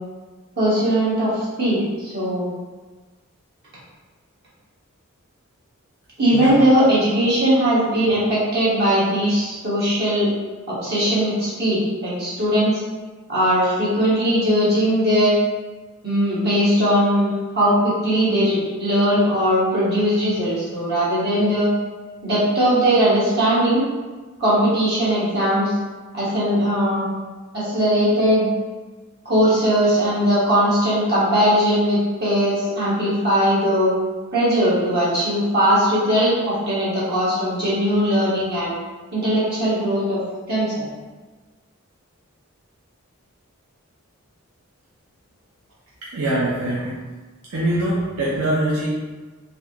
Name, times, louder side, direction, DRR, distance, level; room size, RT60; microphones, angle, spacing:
voice 1, 0.6-2.4 6.2-10.3 10.7-12.8 13.3-15.4 16.0-21.7 22.2-23.8 24.4-25.7 26.1-27.0 27.5-28.4 29.2-33.9 34.3-38.7 39.1-40.2 40.5-40.9, equal, 45° right, -10 dB, 1.3 m, -19 dB
voice 2, 46.1-47.0 47.5-48.9, right 1 dB, 70° right, -7 dB, 0.6 m, -23 dB
4.0 x 2.6 x 2.9 m, 1.3 s
head